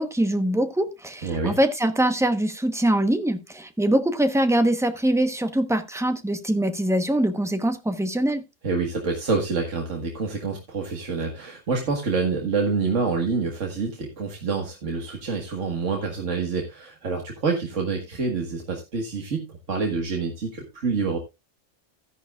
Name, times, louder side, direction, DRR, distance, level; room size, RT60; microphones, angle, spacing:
voice 1, 0.0-8.4, right 1 dB, 5° right, 0.8 m, -23 dB
voice 2, 1.2-1.6 8.6-21.2, right 4 dB, 75° right, 1.9 m, -27 dB
13.0 x 10.5 x 2.4 m
omnidirectional pair, 1.3 m